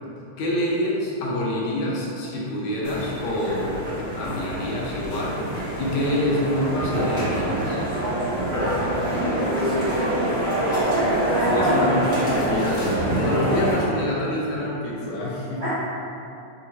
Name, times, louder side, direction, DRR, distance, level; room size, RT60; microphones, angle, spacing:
voice 1, 0.4-5.4 5.8-7.8 11.5-15.6, left 1 dB, 75° left, -5 dB, 1.9 m, -26 dB
sound 1, 2.8-13.7, right 1 dB, 35° left, 0.7 m, -25 dB
voice 2, 9.0-9.8 11.3-11.8 12.1-12.3 15.6-15.7, left 1 dB, 80° right, -13 dB, 0.8 m, -29 dB
6.1 x 2.5 x 2.9 m, 2.7 s
omnidirectional pair, 3.4 m